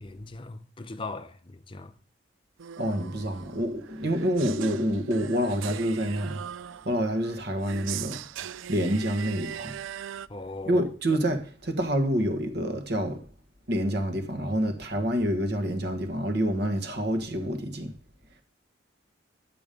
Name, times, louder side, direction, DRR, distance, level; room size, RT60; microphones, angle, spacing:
voice 1, 0.0-1.9 10.3-10.8, left 3 dB, 25° left, 0.6 m, -39 dB
sound 1, 2.6-10.3, right 9 dB, 80° right, 0.4 m, -40 dB
voice 2, 2.8-9.8 10.6-13.2 13.7-17.9, equal, 55° right, 1.5 m, -28 dB
11.0 x 7.1 x 5.3 m
head